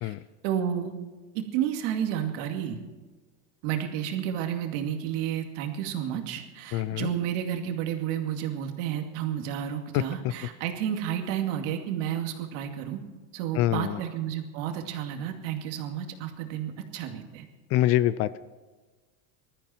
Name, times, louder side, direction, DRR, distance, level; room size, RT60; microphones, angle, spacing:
voice 1, 0.4-0.9 1.3-2.8 3.6-13.0 13.3-17.5, right 9 dB, 65° right, 4 dB, 2.4 m, -31 dB
voice 2, 6.7-7.1 9.9-10.0 13.6-14.0 17.7-18.4, left 14 dB, 40° left, 17 dB, 0.4 m, -25 dB
20.0 x 13.5 x 4.5 m, 1.3 s
supercardioid pair, 135°, 40 cm